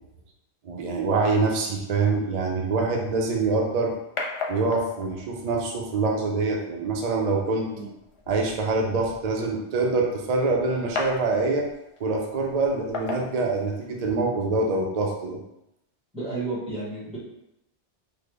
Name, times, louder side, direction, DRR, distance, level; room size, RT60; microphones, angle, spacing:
voice 1, 0.6-3.9 4.5-7.7 8.3-11.7 12.0-15.4, right 3 dB, 55° right, 0 dB, 0.4 m, -25 dB
sound 1, 3.2-14.2, left 4 dB, 55° left, 0.3 m, -39 dB
voice 2, 16.1-17.2, right 3 dB, 5° right, -9 dB, 1.1 m, -32 dB
3.4 x 2.0 x 3.3 m, 0.84 s
omnidirectional pair, 1.1 m